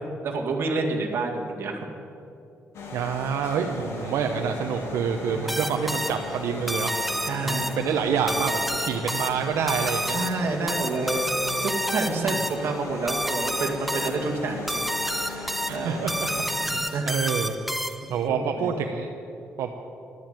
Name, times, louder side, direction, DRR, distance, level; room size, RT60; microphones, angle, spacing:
voice 1, 0.2-1.8 3.6-3.9 5.3-5.6 7.2-7.8 10.1-11.3 11.6-14.8 15.1-16.0 16.9-17.1 18.3-18.7, right 3 dB, 55° right, 1 dB, 2.0 m, -29 dB
sound 1, 2.7-16.6, left 3 dB, 75° left, 2.6 m, -38 dB
voice 2, 2.9-6.9 7.4-10.2 12.0-12.4 15.7-17.5 18.1-19.1 19.6-19.7, right 6 dB, 85° right, 3 dB, 0.9 m, -27 dB
sound 2, 5.5-18.2, equal, ahead, 0.4 m, -30 dB
12.5 x 10.5 x 9.1 m, 2.7 s
cardioid pair, 140°, 5 cm